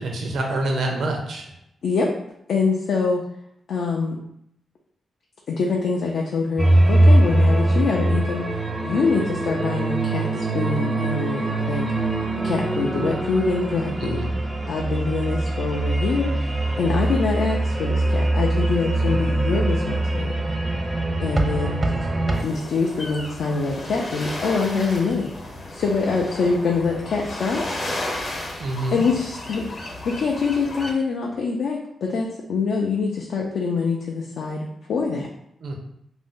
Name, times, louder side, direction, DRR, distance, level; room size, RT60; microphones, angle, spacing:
voice 1, 0.0-1.4 14.0-14.3 19.0-19.2 28.6-29.1 35.6-35.8, right 2 dB, 70° right, 1 dB, 0.6 m, -27 dB
voice 2, 2.5-3.2 3.7-4.2 5.5-8.5 8.8-11.8 12.4-14.2 14.7-20.5 21.2-21.9 22.4-27.6 28.9-35.3, left 4 dB, 75° left, -1 dB, 0.3 m, -25 dB
sound 1, 6.6-22.4, right 1 dB, 20° right, 0.4 m, -22 dB
sound 2, 22.3-30.9, left 1 dB, 60° left, 0.8 m, -33 dB
2.5 x 2.0 x 3.6 m, 0.75 s
cardioid pair, 80°, 0 cm